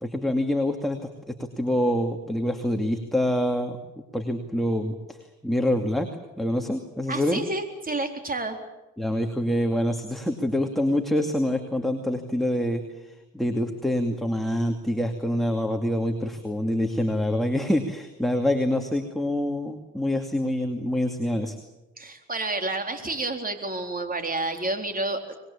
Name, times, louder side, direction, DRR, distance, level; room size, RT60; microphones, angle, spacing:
voice 1, 0.0-3.8 4.1-5.2 5.4-6.1 6.4-7.4 9.0-12.8 13.3-21.6, left 1 dB, ahead, 3 dB, 2.5 m, -26 dB
voice 2, 7.1-8.6 22.0-25.2, right 2 dB, 30° right, 5 dB, 4.0 m, -29 dB
26.0 x 21.5 x 8.7 m, 1.0 s
cardioid pair, 90°, 30 cm